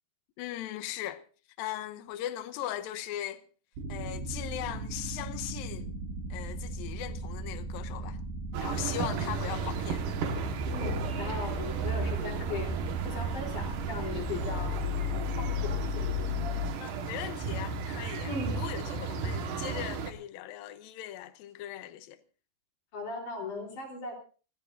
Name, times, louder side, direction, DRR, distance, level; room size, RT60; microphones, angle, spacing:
voice 1, 0.4-1.2 1.6-3.4 3.9-5.9 6.3-8.2 8.6-10.1 16.8-22.2, left 12 dB, 80° left, 2.1 m, -39 dB
sound 1, 3.8-16.7, left 2 dB, 85° right, 8.2 m, -36 dB
sound 2, 8.5-20.1, right 5 dB, 60° right, 2.5 m, -34 dB
voice 2, 10.7-12.7 13.0-14.8 15.1-16.0 18.3-18.6 22.9-24.1, left 3 dB, 45° left, 5.0 m, -38 dB
29.0 x 14.5 x 2.6 m
omnidirectional pair, 5.1 m